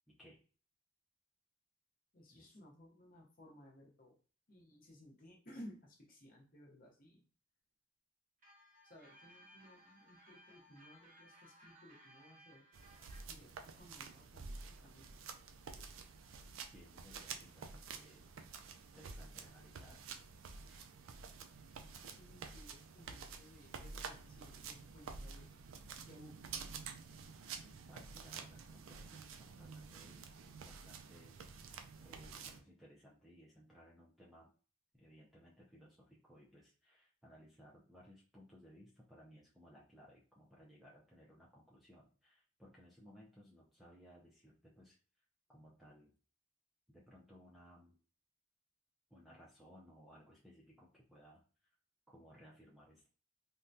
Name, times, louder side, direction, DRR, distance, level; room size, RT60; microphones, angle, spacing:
voice 1, 0.1-0.4 2.3-2.5 16.7-18.3 18.9-20.0 27.6-31.7 32.0-34.5 34.9-45.0 45.5-46.1 46.9-48.0 49.1-51.4 52.1-53.1, equal, ahead, -5 dB, 0.4 m, -61 dB
voice 2, 2.1-4.2 4.5-7.2 8.8-12.7 13.3-15.2 20.7-20.9 21.8-25.6 26.0-26.6, equal, 45° left, -2 dB, 0.8 m, -58 dB
sound 1, 8.4-13.2, equal, 40° right, 0.7 m, -62 dB
sound 2, 12.7-32.6, right 5 dB, 80° right, 0.4 m, -50 dB
3.6 x 2.2 x 2.6 m, 0.39 s
head